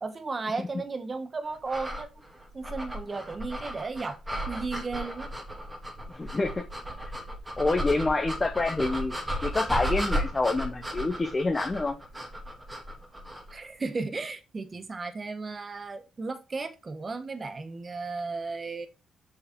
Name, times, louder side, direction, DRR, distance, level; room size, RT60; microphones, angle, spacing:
voice 1, 0.0-2.1 2.5-4.2 4.5-5.3 13.5-18.9, right 3 dB, 30° right, 1.0 m, -35 dB
sound 1, 1.7-13.6, equal, 15° right, 2.2 m, -34 dB
voice 2, 6.1-6.6 7.0-7.1 7.6-9.1 9.4-12.0, left 3 dB, 25° left, 0.9 m, -27 dB
6.5 x 5.5 x 3.6 m
cardioid pair, 90°, 0 cm